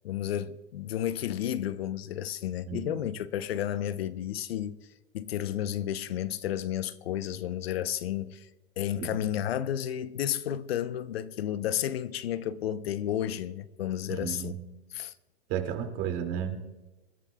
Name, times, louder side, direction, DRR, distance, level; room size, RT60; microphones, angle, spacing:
voice 1, 0.0-4.8 5.1-8.5 8.8-14.5 14.9-15.1, left 11 dB, 70° left, 0.8 m, -32 dB
voice 2, 2.6-3.0 9.0-9.2 14.1-14.6 15.5-16.8, right 8 dB, 40° right, 2.4 m, -33 dB
26.5 x 11.5 x 2.3 m
hypercardioid pair, 120°, 32 cm